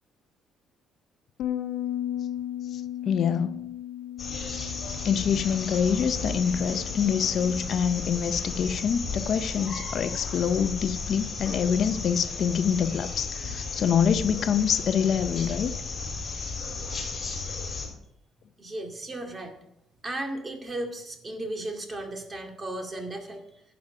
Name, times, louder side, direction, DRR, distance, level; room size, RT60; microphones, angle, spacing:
Bass guitar, 1.4-7.6, left 11 dB, 90° left, 0.9 m, -36 dB
voice 1, 2.6-3.6 5.0-15.7, left 7 dB, 55° left, 0.5 m, -26 dB
sound 1, 4.2-17.9, left 4 dB, 25° left, 5.7 m, -34 dB
voice 2, 18.6-19.6 20.0-23.6, right 1 dB, 25° right, 2.3 m, -35 dB
12.0 x 9.5 x 4.9 m
cardioid pair, 135°, 0 cm